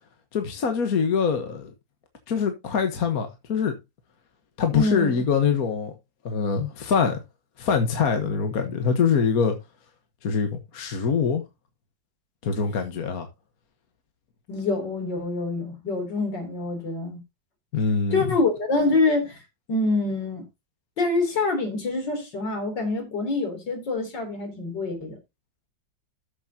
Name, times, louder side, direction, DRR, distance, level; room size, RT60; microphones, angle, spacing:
voice 1, 0.3-1.7 2.3-3.8 4.6-5.9 6.3-7.2 7.6-9.6 10.2-11.4 12.4-13.3 17.7-18.3, left 6 dB, 55° left, 1.6 m, -24 dB
voice 2, 4.7-5.2 14.5-17.2 18.1-19.4 19.7-20.4 21.0-25.2, left 3 dB, 70° left, 3.9 m, -26 dB
13.0 x 7.1 x 2.8 m
omnidirectional pair, 2.0 m